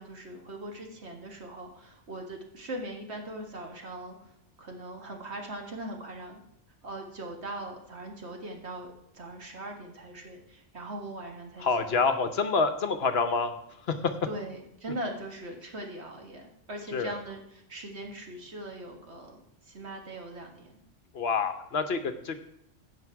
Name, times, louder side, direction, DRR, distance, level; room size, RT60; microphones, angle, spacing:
voice 1, 0.0-4.3 4.6-6.4 6.8-12.0 14.3-20.7, right 1 dB, 65° right, 2 dB, 2.0 m, -40 dB
voice 2, 11.6-13.5 13.9-14.0 16.9-17.2 21.1-22.4, left 4 dB, 60° left, 9 dB, 1.0 m, -27 dB
15.5 x 5.7 x 4.7 m, 0.82 s
omnidirectional pair, 1.2 m